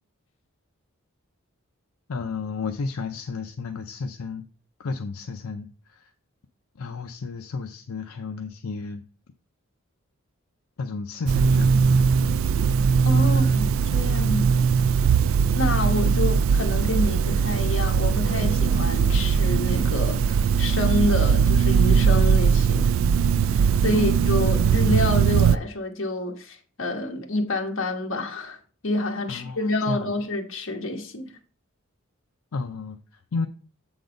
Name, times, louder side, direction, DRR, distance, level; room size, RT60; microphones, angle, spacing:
voice 1, 2.1-4.4 4.8-6.1 6.8-9.0 10.8-12.1 13.3-13.5 16.1-16.4 23.9-24.2 29.3-30.2 32.5-33.5, left 4 dB, 80° left, 0.5 m, -33 dB
sound 1, 11.3-25.6, right 6 dB, 65° right, 0.3 m, -20 dB
voice 2, 13.0-14.7 15.5-23.0 23.5-31.3, left 2 dB, 60° left, 1.3 m, -28 dB
7.8 x 3.9 x 5.1 m
head